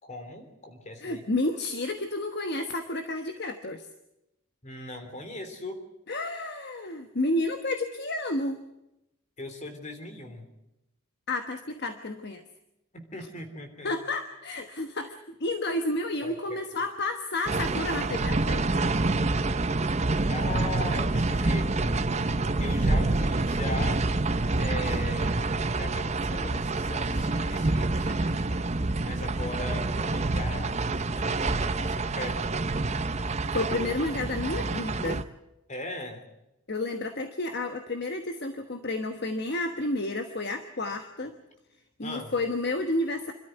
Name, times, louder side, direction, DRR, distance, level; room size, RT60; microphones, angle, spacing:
voice 1, 0.0-1.2 4.6-5.8 9.4-10.5 12.9-13.9 16.2-16.3 19.6-19.7 20.3-22.1 22.6-24.0 24.6-28.5 29.0-30.7 31.1-32.5 35.7-36.2 42.0-42.3, left 1 dB, 35° left, 6 dB, 3.3 m, -39 dB
voice 2, 1.0-3.9 6.1-8.6 11.3-12.4 13.8-18.9 33.5-35.2 36.7-41.3 42.0-43.3, left 2 dB, 50° left, 7 dB, 1.2 m, -31 dB
sound 1, 17.5-35.2, right 2 dB, 30° right, 0.7 m, -27 dB
26.5 x 13.0 x 9.3 m, 0.93 s
head